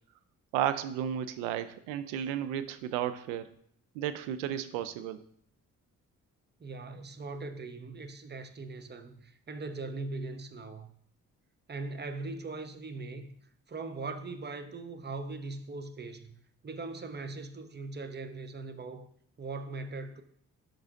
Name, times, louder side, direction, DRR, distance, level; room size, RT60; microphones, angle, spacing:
voice 1, 0.5-3.5 3.9-5.2, right 10 dB, 85° right, 0.5 m, -33 dB
voice 2, 6.6-10.9 11.7-13.3 13.7-16.3 16.6-19.1 19.4-20.2, right 3 dB, 25° right, 0.8 m, -40 dB
11.0 x 3.9 x 2.5 m
hypercardioid pair, 45°, 41 cm